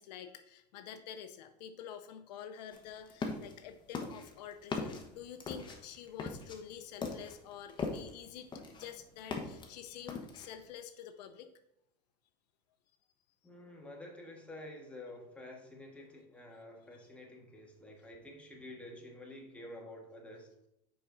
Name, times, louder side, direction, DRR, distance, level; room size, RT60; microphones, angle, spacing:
voice 1, 0.0-11.5, left 9 dB, 80° left, 9 dB, 0.6 m, -48 dB
sound 1, 2.7-3.5 3.9-8.2 8.5-9.7 10.1-10.6, left 4 dB, 20° left, 1.0 m, -40 dB
voice 2, 13.4-20.7, left 1 dB, 5° left, 0 dB, 1.4 m, -49 dB
6.3 x 4.9 x 3.8 m, 0.79 s
supercardioid pair, 110°, 21 cm